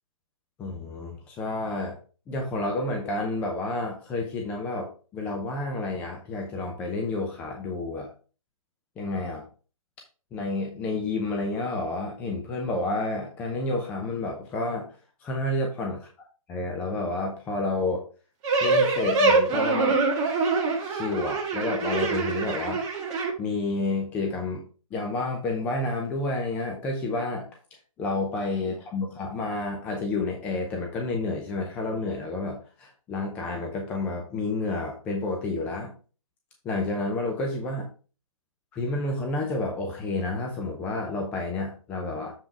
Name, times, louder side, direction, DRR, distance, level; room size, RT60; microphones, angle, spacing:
voice 1, 0.6-2.0 2.3-8.1 9.0-9.4 10.3-14.9 15.2-16.0 16.5-18.0 18.6-20.0 20.8-22.8 23.4-24.6 24.9-27.5 28.0-35.9 36.6-37.9 38.7-42.3, left 2 dB, 10° left, 1 dB, 0.5 m, -30 dB
sound 1, 18.4-23.3, right 3 dB, 20° right, 1.4 m, -24 dB
7.3 x 5.2 x 3.5 m, 0.37 s
hypercardioid pair, 155°, 18 cm